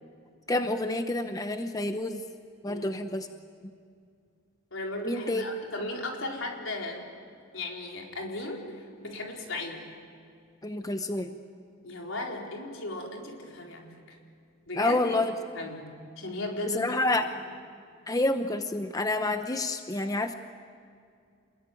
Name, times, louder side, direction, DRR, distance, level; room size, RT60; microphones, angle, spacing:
voice 1, 0.5-2.2 2.6-3.3 5.0-5.4 10.6-11.3 14.8-15.3 16.7-17.4 18.1-20.3, left 2 dB, 20° left, 7 dB, 0.8 m, -28 dB
voice 2, 2.6-3.0 4.7-7.1 7.5-9.9 11.8-14.2 14.7-15.2 15.5-17.0, left 2 dB, 75° left, 0 dB, 4.4 m, -36 dB
28.5 x 21.0 x 9.4 m, 2.3 s
head